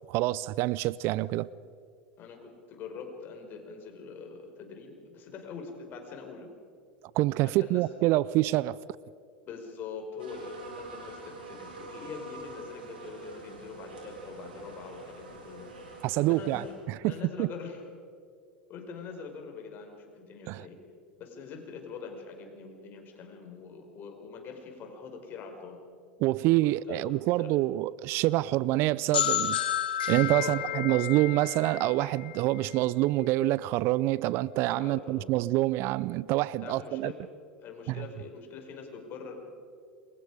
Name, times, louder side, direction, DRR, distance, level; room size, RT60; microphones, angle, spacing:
voice 1, 0.1-1.5 7.1-8.8 16.0-17.1 17.4-17.5 20.5-20.7 26.2-29.6 30.1-37.1 37.9-38.0, right 17 dB, 50° right, 0.5 m, -26 dB
voice 2, 2.2-6.5 7.4-7.8 9.5-15.7 16.1-16.7 17.0-17.8 18.7-20.8 21.2-25.8 26.6-27.5 30.3-31.2 34.8-35.3 36.6-37.2 37.6-39.4, left 5 dB, 40° left, 5.3 m, -43 dB
sound 1, 10.2-16.7, right 2 dB, 85° right, 7.7 m, -45 dB
sound 2, 29.1-32.8, left 11 dB, 75° left, 1.5 m, -31 dB
28.0 x 23.0 x 5.0 m
hypercardioid pair, 90°, 5 cm